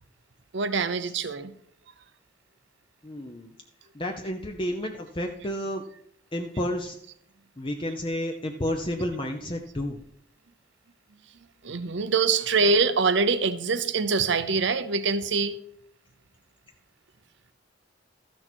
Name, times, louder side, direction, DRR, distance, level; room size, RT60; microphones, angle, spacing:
voice 1, 0.5-1.5 11.6-15.6, right 4 dB, 65° right, 0.7 m, -24 dB
voice 2, 3.0-3.5 3.9-5.9 6.3-7.0 7.6-10.0, left 1 dB, 25° left, 0.7 m, -31 dB
13.5 x 6.3 x 4.5 m
head